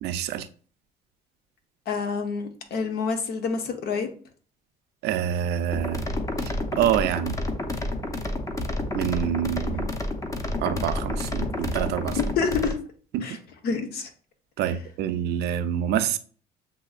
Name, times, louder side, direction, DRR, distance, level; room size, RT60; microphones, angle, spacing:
voice 1, 0.0-0.5 5.0-6.0 6.4-7.3 8.9-9.9 10.6-12.2 13.1-13.2 14.6-16.2, right 10 dB, 80° right, 0.5 m, -26 dB
voice 2, 1.9-4.1 12.2-12.8 13.2-13.4 13.6-14.1, left 5 dB, 70° left, 1.0 m, -27 dB
sound 1, 5.7-12.7, left 1 dB, 20° left, 0.7 m, -30 dB
7.5 x 2.7 x 2.4 m
cardioid pair, 110°, 17 cm